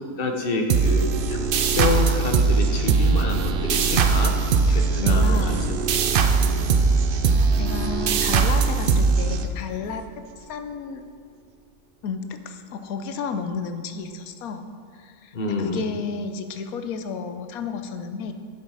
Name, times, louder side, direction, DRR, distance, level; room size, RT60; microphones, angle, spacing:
voice 1, 0.2-1.0 1.3-1.4 1.7-4.3 4.7-5.5 6.4-6.6 15.3-15.9, left 3 dB, 45° left, 3 dB, 1.1 m, -27 dB
sound 1, 0.7-9.9, right 5 dB, 60° right, 0.6 m, -20 dB
voice 2, 4.7-5.9 7.6-10.0 10.5-11.0 12.0-18.3, left 5 dB, 85° left, 8 dB, 1.2 m, -32 dB
10.5 x 7.3 x 4.8 m, 2.1 s
omnidirectional pair, 1.5 m